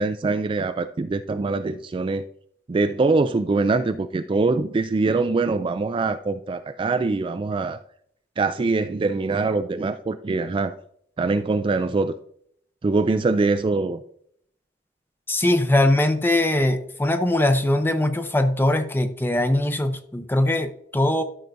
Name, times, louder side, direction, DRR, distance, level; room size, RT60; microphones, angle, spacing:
voice 1, 0.0-2.2 2.7-7.8 8.4-10.7 11.2-12.1 12.8-14.0, right 3 dB, 30° right, 9 dB, 0.3 m, -23 dB
voice 2, 15.3-21.2, left 1 dB, 10° left, 8 dB, 0.6 m, -21 dB
12.5 x 5.8 x 2.6 m, 0.66 s
head